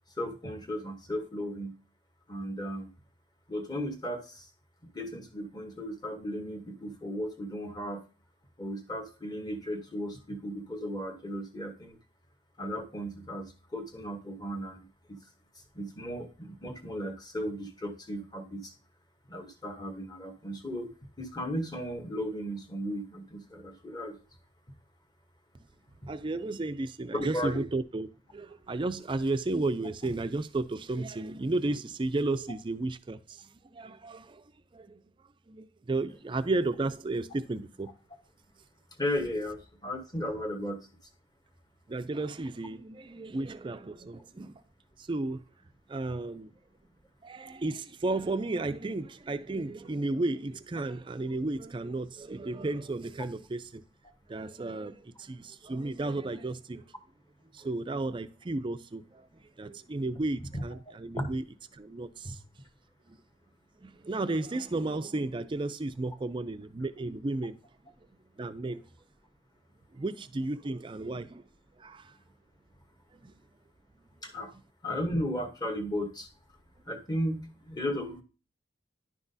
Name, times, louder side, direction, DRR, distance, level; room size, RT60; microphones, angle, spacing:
voice 1, 0.2-1.8 2.3-2.9 3.5-4.5 4.9-8.0 8.6-12.0 12.6-14.8 15.1-15.2 15.5-18.7 19.3-20.9 21.2-24.2 26.0-26.1 27.1-27.6 39.0-40.9 57.6-57.7 60.5-60.6 61.1-61.3 62.2-62.3 74.2-74.5 74.8-76.3 76.9-78.2, equal, 20° left, 1.1 m, -35 dB
voice 2, 26.1-34.4 34.7-35.0 35.5-37.9 41.9-44.6 45.0-45.4 45.9-46.5 47.2-53.8 54.3-56.8 57.5-59.3 59.6-61.4 61.7-62.4 63.1-63.2 63.8-67.6 68.4-68.8 69.9-71.4 71.8-72.1 73.2-73.3, right 2 dB, 25° right, 0.4 m, -33 dB
10.5 x 5.9 x 2.7 m
head